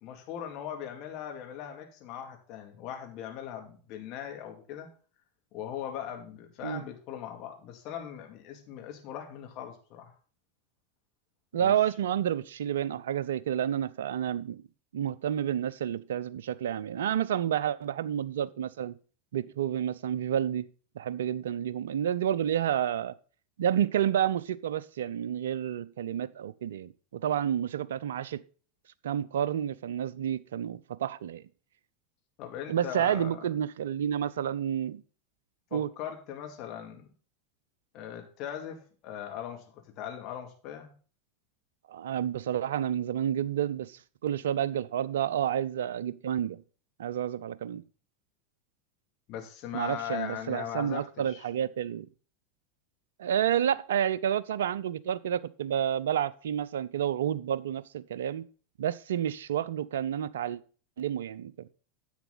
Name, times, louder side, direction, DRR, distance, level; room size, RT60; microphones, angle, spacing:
voice 1, 0.0-4.9 5.5-10.1 11.5-11.7 32.4-33.5 35.7-37.1 37.9-40.9 49.3-51.4, left 10 dB, 50° left, 2.5 m, -40 dB
voice 2, 11.5-14.6 14.9-19.0 19.3-20.7 21.0-23.1 23.6-28.4 29.0-31.4 32.7-35.0 35.7-35.9 41.9-46.6 47.0-47.8 49.7-52.1 53.2-58.5 58.8-60.6 61.0-61.7, right 10 dB, 75° right, 0.6 m, -30 dB
10.5 x 7.9 x 4.0 m
hypercardioid pair, 90°, 0 cm